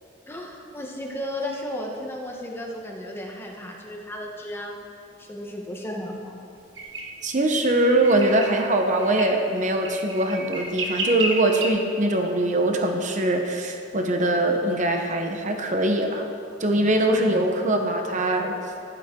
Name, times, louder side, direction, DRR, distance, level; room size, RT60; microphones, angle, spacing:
voice 1, 0.3-4.8 5.2-6.4 17.6-17.8, left 1 dB, 10° left, 0 dB, 1.0 m, -34 dB
sound 1, 6.7-7.1 8.0-8.6 9.0-9.3 9.8-11.7, right 2 dB, 70° right, 1.6 m, -30 dB
voice 2, 7.2-16.3 16.6-18.6, right 1 dB, 40° right, 4 dB, 0.9 m, -22 dB
14.0 x 11.5 x 3.7 m, 2.6 s
head